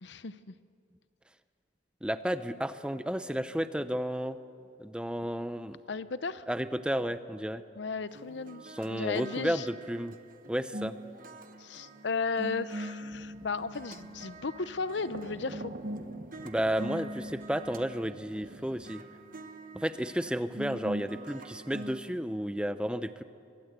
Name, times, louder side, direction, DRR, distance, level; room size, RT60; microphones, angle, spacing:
voice 1, 0.0-0.6 5.9-6.5 7.8-8.6 8.9-9.7 11.6-15.7, left 4 dB, 70° left, 14 dB, 0.8 m, -35 dB
voice 2, 2.0-4.4 4.8-5.8 6.5-7.6 8.6-10.2 10.5-10.9 16.4-19.0 19.7-23.2, equal, 5° right, 11 dB, 0.7 m, -32 dB
sound 1, 8.1-22.0, right 1 dB, 45° right, 1.1 m, -43 dB
sound 2, 13.1-18.9, right 2 dB, 60° right, 1.7 m, -49 dB
23.5 x 23.0 x 8.2 m, 2.5 s
head